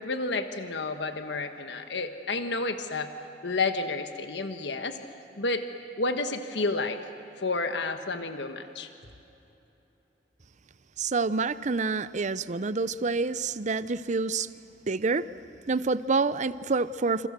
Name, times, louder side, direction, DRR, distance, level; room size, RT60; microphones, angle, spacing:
voice 1, 0.0-3.1 3.4-5.0 5.4-5.6 6.0-7.0 7.4-8.9, left 3 dB, 75° left, 7 dB, 1.4 m, -30 dB
voice 2, 11.0-14.5 14.9-15.3 15.7-17.3, right 4 dB, 45° right, 15 dB, 0.6 m, -27 dB
27.5 x 27.5 x 6.7 m, 2.9 s
head